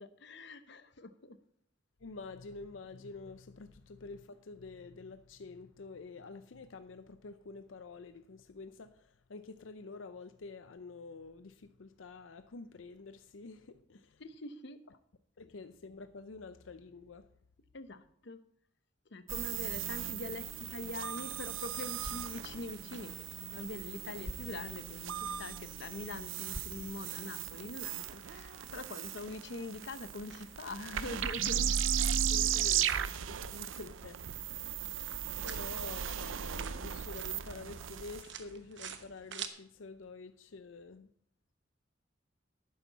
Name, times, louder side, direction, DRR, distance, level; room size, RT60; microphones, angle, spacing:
voice 1, 0.0-1.4 14.2-14.8 17.7-18.4 19.1-31.7 32.6-32.7, left 2 dB, 65° left, 0.9 m, -44 dB
voice 2, 2.0-14.2 15.4-17.3 32.3-34.2 35.4-41.1, left 3 dB, 85° left, 0.6 m, -48 dB
sound 1, 19.3-38.2, right 9 dB, 90° right, 0.6 m, -36 dB
sound 2, 21.0-39.5, right 7 dB, 65° right, 1.1 m, -53 dB
sound 3, 21.8-27.9, equal, 20° left, 1.0 m, -52 dB
12.0 x 9.5 x 4.1 m
head